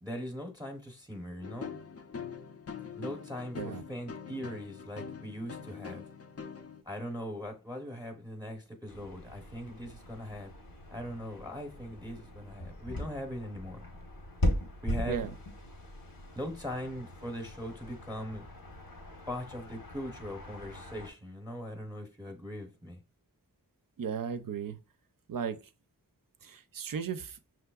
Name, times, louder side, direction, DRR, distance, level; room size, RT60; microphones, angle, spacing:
voice 1, 0.0-1.7 2.9-6.0 6.8-10.5 10.9-13.8 14.8-15.3 16.3-18.5 19.3-23.0, equal, 10° right, 0.7 m, -40 dB
sound 1, 1.4-6.8, left 6 dB, 45° left, 0.4 m, -43 dB
sound 2, 8.9-21.1, equal, 80° left, 1.1 m, -39 dB
voice 2, 24.0-24.8 25.3-25.6 26.4-27.4, right 7 dB, 70° right, 0.5 m, -35 dB
5.7 x 3.1 x 2.3 m
wide cardioid pair, 50°, 35 cm